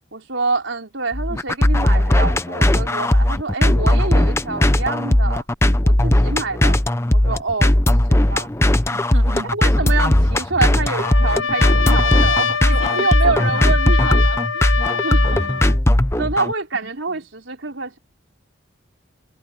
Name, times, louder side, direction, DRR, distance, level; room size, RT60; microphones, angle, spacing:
voice 1, 0.1-5.4 5.8-6.8 7.1-7.8 8.1-8.5 9.5-14.7 15.0-15.4 16.2-18.0, right 3 dB, 70° right, 4.0 m, -26 dB
sound 1, 1.1-16.5, left 1 dB, 15° left, 0.7 m, -17 dB
voice 2, 8.9-9.5 12.6-13.6 15.1-15.8 17.1-17.2, right 2 dB, 90° right, 1.9 m, -35 dB
Trumpet, 10.9-15.8, left 6 dB, 85° left, 1.6 m, -23 dB
head